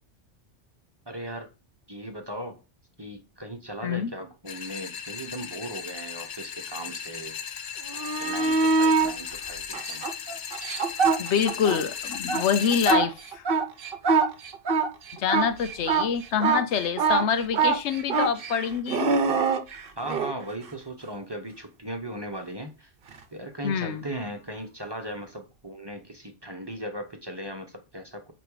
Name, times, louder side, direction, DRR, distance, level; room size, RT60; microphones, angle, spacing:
voice 1, 1.1-1.5 1.9-2.6 3.0-7.4 8.2-10.0 20.0-22.9 23.3-28.2, right 1 dB, 25° right, 0.9 m, -37 dB
voice 2, 3.8-4.1 11.2-13.4 15.1-19.2 23.6-24.1, left 7 dB, 75° left, 0.9 m, -26 dB
sound 1, 4.5-13.0, left 7 dB, 50° left, 0.7 m, -36 dB
sound 2, 7.9-9.1 9.7-11.8 12.1-20.3 23.1-23.2, right 4 dB, 50° right, 0.9 m, -24 dB
8.5 x 3.0 x 4.8 m
omnidirectional pair, 1.2 m